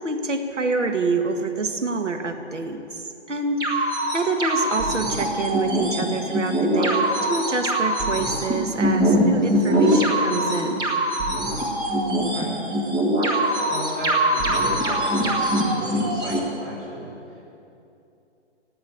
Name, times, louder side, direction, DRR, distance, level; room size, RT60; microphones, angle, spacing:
voice 1, 0.0-10.8, right 3 dB, 85° right, 5 dB, 1.8 m, -26 dB
sound 1, 3.6-16.4, right 1 dB, 10° right, 1.6 m, -22 dB
voice 2, 12.1-12.5 13.7-17.1, right 1 dB, 30° right, -5 dB, 4.7 m, -35 dB
15.0 x 8.9 x 9.9 m, 2.8 s
figure-of-eight pair, 140°, 35 cm